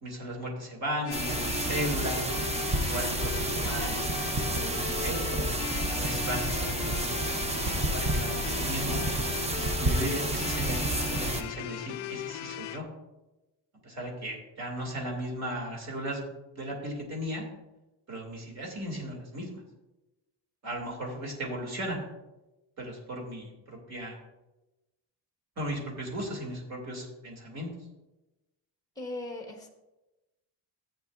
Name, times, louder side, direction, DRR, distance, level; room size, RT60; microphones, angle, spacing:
voice 1, 0.0-2.3 2.8-7.2 7.9-9.0 9.8-12.9 13.8-17.5 18.1-19.6 20.6-22.0 22.8-24.2 25.6-27.7, equal, 35° right, 1 dB, 2.2 m, -36 dB
sound 1, 1.0-12.8, left 14 dB, 70° left, 0.5 m, -38 dB
sound 2, 1.1-11.4, right 2 dB, 15° right, 0.4 m, -30 dB
voice 2, 28.9-29.7, left 2 dB, 10° left, 3 dB, 1.1 m, -38 dB
14.0 x 8.8 x 2.4 m, 1.0 s
cardioid pair, 170°, 47 cm